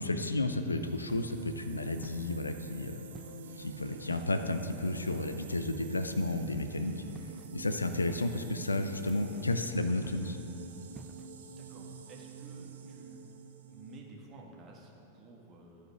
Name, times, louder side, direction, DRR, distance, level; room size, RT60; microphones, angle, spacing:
voice 1, 0.0-3.0 3.6-6.9 7.5-10.4, left 2 dB, 85° left, 8 dB, 0.5 m, -32 dB
sound 1, 0.6-14.0, right 5 dB, 70° right, 0.7 m, -48 dB
sound 2, 1.1-1.5 2.0-2.6 3.1-3.5 4.1-4.5 5.1-5.6 7.1-7.5 8.1-8.5 9.0-9.5 10.0-10.5 10.9-11.3, right 2 dB, 10° right, 0.4 m, -51 dB
voice 2, 11.6-13.2 13.7-15.9, right 3 dB, 35° right, -1 dB, 1.7 m, -52 dB
12.0 x 5.0 x 5.8 m, 3.0 s
figure-of-eight pair, 95°, 0 cm